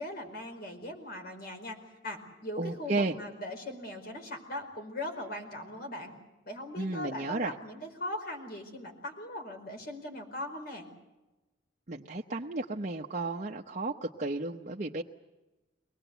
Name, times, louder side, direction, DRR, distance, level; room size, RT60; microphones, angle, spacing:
voice 1, 0.0-1.8 2.0-6.1 6.4-10.9, left 1 dB, 50° left, 4 dB, 4.7 m, -40 dB
voice 2, 2.6-3.1 6.8-7.5 11.9-15.0, right 2 dB, 40° right, -1 dB, 0.9 m, -33 dB
23.5 x 19.5 x 8.0 m, 1.1 s
head